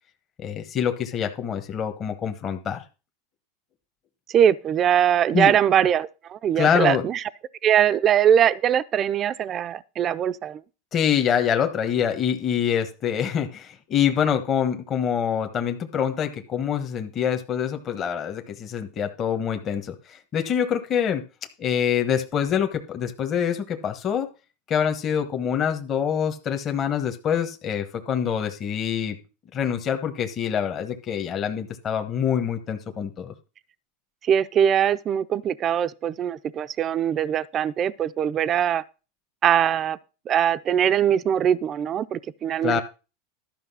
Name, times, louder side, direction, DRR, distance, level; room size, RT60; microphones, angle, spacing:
voice 1, 0.4-2.8 5.3-5.5 6.6-7.0 10.9-21.2 21.6-24.3 24.7-29.2 29.5-33.3 42.6-42.8, left 8 dB, 35° left, 1.2 m, -25 dB
voice 2, 4.3-7.2 7.6-10.6 34.2-38.8 39.4-40.0 40.3-42.8, right 9 dB, 35° right, 0.5 m, -22 dB
12.0 x 5.5 x 5.5 m
supercardioid pair, 115°, 0 cm